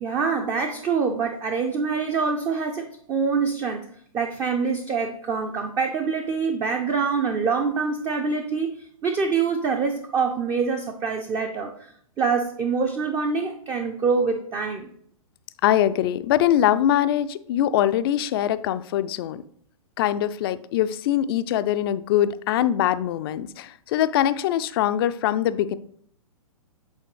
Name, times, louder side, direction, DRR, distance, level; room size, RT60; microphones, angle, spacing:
voice 1, 0.0-3.9 4.1-11.7 12.2-14.9, right 5 dB, 20° right, 4 dB, 0.5 m, -25 dB
voice 2, 15.6-19.4 20.0-25.8, left 11 dB, 40° left, 13 dB, 0.4 m, -23 dB
8.3 x 3.7 x 3.1 m, 0.65 s
figure-of-eight pair, 120°, 18 cm